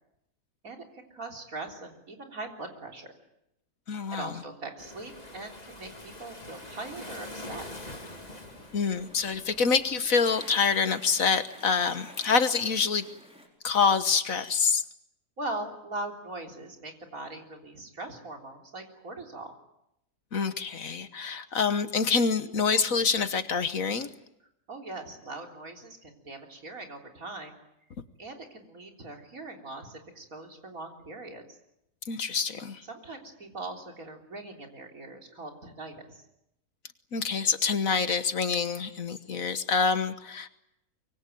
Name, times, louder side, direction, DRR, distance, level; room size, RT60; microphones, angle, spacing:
voice 1, 0.6-3.1 4.1-7.7 15.4-19.5 24.7-27.6 28.2-31.6 32.9-36.2, right 2 dB, 60° right, 3 dB, 4.2 m, -41 dB
voice 2, 3.9-4.3 8.7-13.0 13.6-14.8 20.3-24.1 32.1-32.8 37.1-40.5, left 5 dB, 60° left, 11 dB, 1.6 m, -26 dB
Waves surf, 4.8-10.0, left 1 dB, 25° left, 2.6 m, -44 dB
sound 1, 6.5-13.5, equal, 5° right, 4.9 m, -51 dB
24.5 x 23.5 x 9.2 m, 0.81 s
omnidirectional pair, 1.6 m